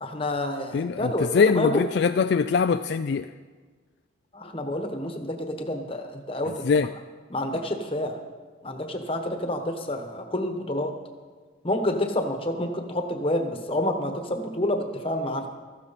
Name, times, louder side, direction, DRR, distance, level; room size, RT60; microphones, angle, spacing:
voice 1, 0.0-1.8 4.3-6.9 7.3-8.2 8.6-10.9 11.6-15.5, left 1 dB, 30° left, 5 dB, 1.1 m, -28 dB
voice 2, 0.7-3.3 6.6-6.9, left 5 dB, 55° left, 10 dB, 0.3 m, -22 dB
15.5 x 13.5 x 4.1 m, 1.5 s
head